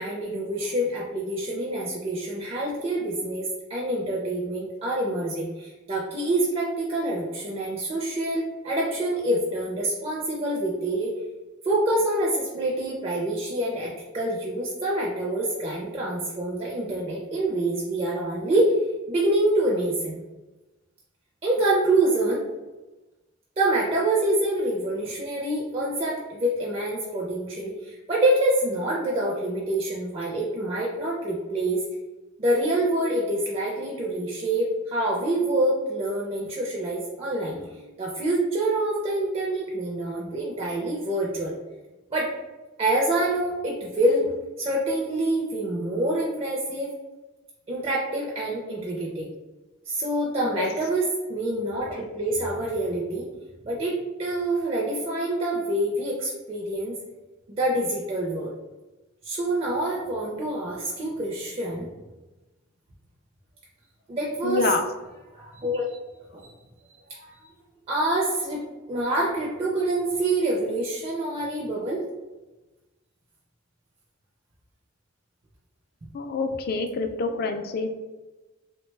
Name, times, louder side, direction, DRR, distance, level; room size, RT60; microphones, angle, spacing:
voice 1, 0.0-11.1 11.6-18.7 19.1-20.2 21.4-22.4 23.6-31.8 32.4-41.5 42.1-42.3 42.8-46.9 47.7-49.3 49.9-53.3 53.6-57.0 57.6-58.5 59.2-61.9 64.1-64.8 65.1-66.0 66.3-66.5 67.1-67.4 67.9-68.6 68.9-72.0 77.3-77.5, right 1 dB, 30° right, -4 dB, 0.4 m, -26 dB
voice 2, 64.4-64.8 76.1-77.9, left 4 dB, 50° left, 6 dB, 0.3 m, -26 dB
3.0 x 2.1 x 3.1 m, 1.1 s
head